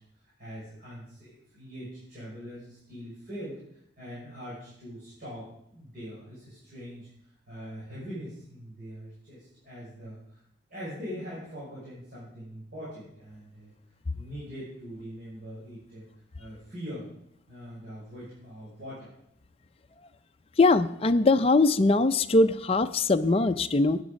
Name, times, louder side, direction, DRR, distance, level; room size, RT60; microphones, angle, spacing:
voice 1, 0.1-7.1 7.5-10.4 10.7-13.7 14.1-16.1 16.4-17.1 17.5-19.1, equal, 50° right, -9 dB, 6.0 m, -42 dB
voice 2, 20.6-24.0, left 3 dB, 30° left, 9 dB, 0.5 m, -21 dB
13.5 x 9.7 x 5.2 m, 0.75 s
head